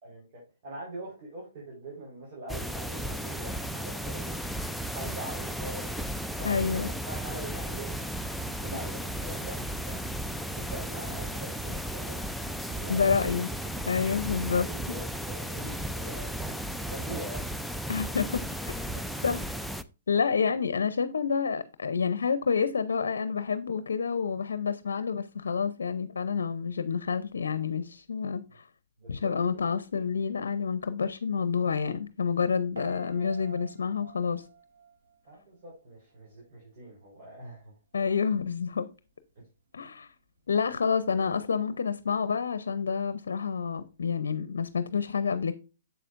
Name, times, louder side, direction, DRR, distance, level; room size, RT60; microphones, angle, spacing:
voice 1, 0.0-4.4 4.9-6.0 6.4-10.0 10.4-12.3 12.7-13.2 14.7-17.5 29.0-29.7 35.2-37.7, right 1 dB, 45° right, 4.0 m, -43 dB
sound 1, 2.5-19.8, right 1 dB, ahead, 0.4 m, -35 dB
voice 2, 6.4-6.9 12.9-13.5 13.9-14.7 17.9-18.8 19.2-19.4 20.1-28.6 29.1-34.4 37.9-38.9 39.7-40.1 40.5-45.5, left 6 dB, 80° left, 0.6 m, -28 dB
Piano, 32.7-35.8 36.1-36.6, right 6 dB, 65° right, 1.7 m, -49 dB
7.7 x 6.9 x 2.5 m
hypercardioid pair, 135°, 0 cm